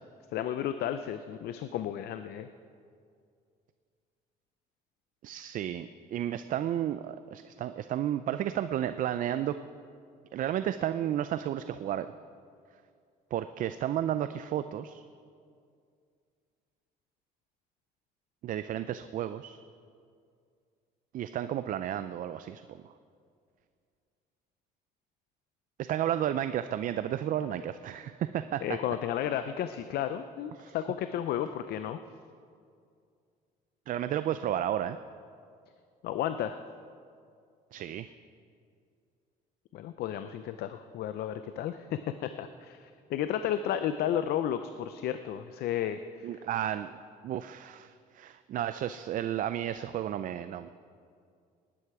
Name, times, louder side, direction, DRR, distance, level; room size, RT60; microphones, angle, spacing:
voice 1, 0.3-2.5 28.6-32.0 36.0-36.6 39.7-46.4, left 10 dB, 70° left, 10 dB, 0.5 m, -33 dB
voice 2, 5.2-9.6 10.3-12.1 13.3-15.0 18.4-19.6 21.1-22.6 25.8-28.8 30.6-30.8 33.9-35.0 37.7-38.1 46.2-47.0 47.2-50.7, right 11 dB, 55° right, 11 dB, 0.4 m, -32 dB
19.5 x 9.8 x 4.8 m, 2.3 s
cardioid pair, 110°, 17 cm